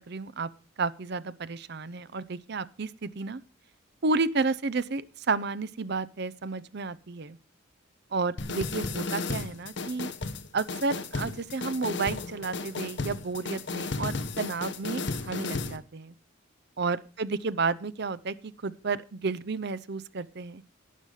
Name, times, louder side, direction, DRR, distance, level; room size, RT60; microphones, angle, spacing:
voice 1, 0.1-0.5 0.8-3.4 4.0-7.4 8.1-10.1 10.5-16.1 16.8-20.6, right 4 dB, 55° right, 15 dB, 0.6 m, -31 dB
sound 1, 8.4-15.8, left 3 dB, 60° left, 1.2 m, -34 dB
12.0 x 9.3 x 4.9 m, 0.34 s
head